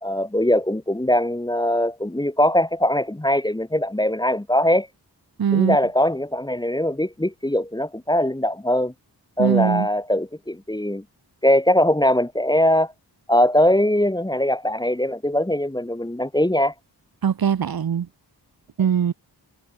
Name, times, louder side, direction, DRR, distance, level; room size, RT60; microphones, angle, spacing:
voice 1, 0.0-4.9 5.5-8.9 9.4-11.0 11.4-12.9 13.3-16.7, left 1 dB, 10° left, 1.1 m, -21 dB
voice 2, 5.4-5.8 9.4-9.9 17.2-18.1 18.8-19.1, right 8 dB, 60° right, 0.8 m, -21 dB
wide cardioid pair, 95°, 42 cm